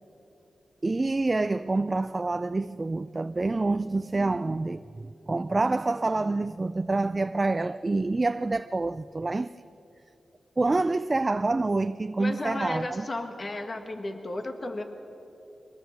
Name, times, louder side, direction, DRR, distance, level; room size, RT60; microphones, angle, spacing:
voice 1, 0.8-9.5 10.6-13.1, right 3 dB, 35° right, 0.4 m, -27 dB
voice 2, 12.2-14.8, left 2 dB, 40° left, 1.8 m, -34 dB
23.5 x 19.0 x 7.3 m
cardioid pair, 60°, 0 cm